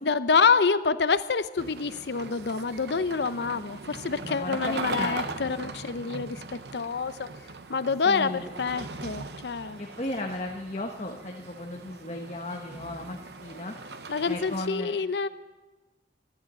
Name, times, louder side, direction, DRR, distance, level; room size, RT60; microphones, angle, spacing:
voice 1, 0.0-6.4 6.7-7.3 7.7-9.8 14.1-15.3, left 5 dB, 75° left, 14 dB, 0.6 m, -27 dB
sound 1, 1.6-14.7, right 3 dB, 75° right, 0.9 m, -40 dB
voice 2, 4.2-5.5 8.0-8.5 9.8-13.7 14.3-15.0, left 1 dB, 40° left, 1 dB, 1.2 m, -35 dB
13.0 x 12.0 x 8.2 m, 1.2 s
head